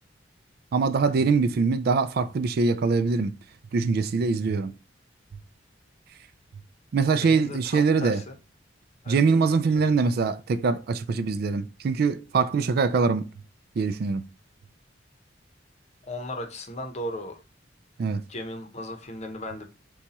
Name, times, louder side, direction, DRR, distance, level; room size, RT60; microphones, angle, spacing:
voice 1, 0.7-3.3 3.7-4.7 6.9-8.2 9.1-13.3 13.8-14.2 18.0-18.2, right 4 dB, 55° right, 0.3 m, -23 dB
voice 2, 7.2-8.4 9.0-9.9 16.0-17.4 18.3-19.7, left 1 dB, 35° left, 0.8 m, -37 dB
6.9 x 2.3 x 2.8 m
head